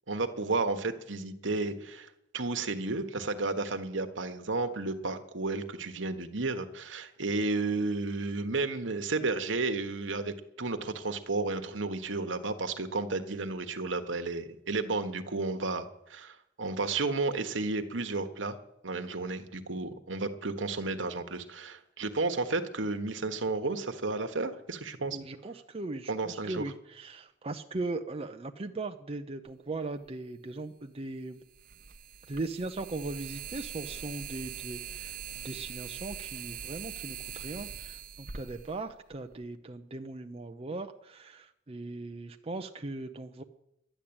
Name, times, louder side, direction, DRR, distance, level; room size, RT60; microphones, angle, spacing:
voice 1, 0.1-2.1 2.3-18.5 18.8-25.2 26.1-26.6, right 3 dB, 70° right, 7 dB, 1.4 m, -32 dB
voice 2, 25.1-31.4 32.3-43.4, right 2 dB, 30° right, 5 dB, 0.6 m, -39 dB
broken bulb, 30.1-30.2 31.5-39.4, right 8 dB, 50° right, 1.0 m, -42 dB
12.0 x 10.0 x 8.8 m, 0.83 s
head